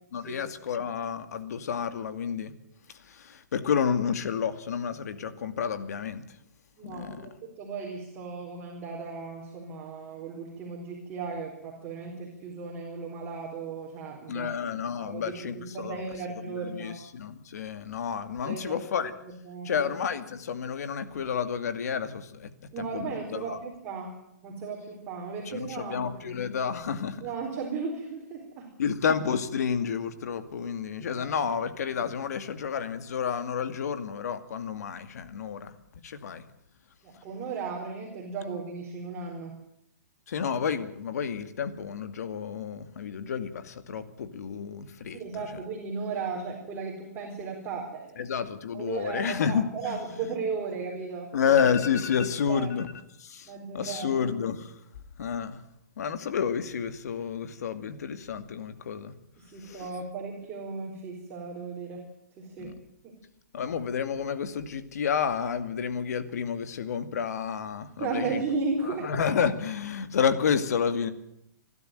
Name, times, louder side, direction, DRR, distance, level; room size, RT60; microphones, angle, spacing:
voice 1, 0.1-2.5 3.0-6.2 6.8-7.3 14.3-16.0 16.5-19.1 19.6-22.5 22.8-23.1 23.3-23.6 25.5-27.2 28.8-35.7 36.0-36.4 40.3-45.4 48.2-50.3 51.3-52.9 53.2-54.7 55.2-55.6 56.0-59.1 59.6-59.9 62.6-62.7 63.5-68.4 68.9-71.1, left 7 dB, 65° left, 10 dB, 2.3 m, -30 dB
voice 2, 6.8-7.3 7.6-14.5 15.0-17.0 18.4-19.9 22.7-26.4 27.2-28.7 31.1-31.3 37.0-39.5 45.1-48.2 48.7-51.3 52.5-52.7 53.5-54.2 59.4-62.0 62.4-62.7 63.0-63.1 67.9-69.1, right 4 dB, 25° right, -1 dB, 4.4 m, -36 dB
27.5 x 12.5 x 9.2 m, 0.78 s
hypercardioid pair, 155°, 9 cm